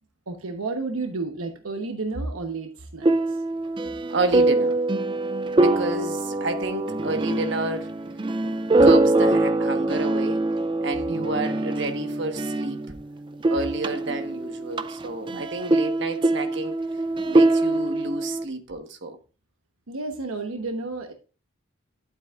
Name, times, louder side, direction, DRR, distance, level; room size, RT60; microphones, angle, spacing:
voice 1, 0.3-3.4 11.1-11.3 15.3-15.4 19.9-21.1, right 3 dB, 90° right, 1.1 m, -32 dB
sound 1, 3.0-13.0 13.3-18.4, right 2 dB, 25° right, 0.4 m, -23 dB
voice 2, 4.1-4.8 5.6-7.9 8.4-8.5 8.8-10.4 10.8-12.9 13.5-16.8 17.2-19.2, right 2 dB, 55° right, 1.3 m, -30 dB
12.0 x 8.1 x 2.5 m
head